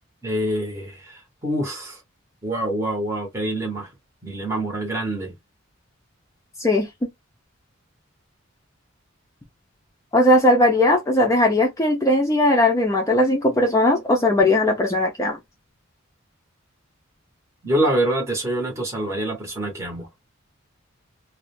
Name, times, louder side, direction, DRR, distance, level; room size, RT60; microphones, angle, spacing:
voice 1, 0.2-2.0 2.4-3.9 4.2-5.3 17.6-20.1, right 1 dB, 15° right, 0.7 m, -25 dB
voice 2, 10.1-15.4, left 1 dB, 15° left, 0.4 m, -18 dB
2.3 x 2.0 x 3.0 m
head